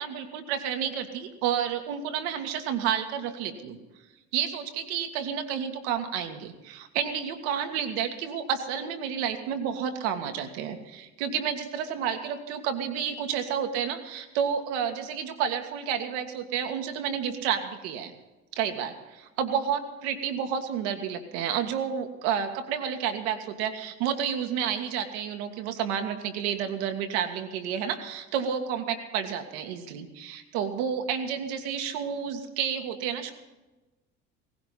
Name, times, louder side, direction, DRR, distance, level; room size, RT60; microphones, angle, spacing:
voice 1, 0.0-3.8 4.3-18.1 18.5-33.3, right 8 dB, 65° right, 6 dB, 1.9 m, -30 dB
18.0 x 16.0 x 4.2 m, 1.1 s
figure-of-eight pair, 60°, 36 cm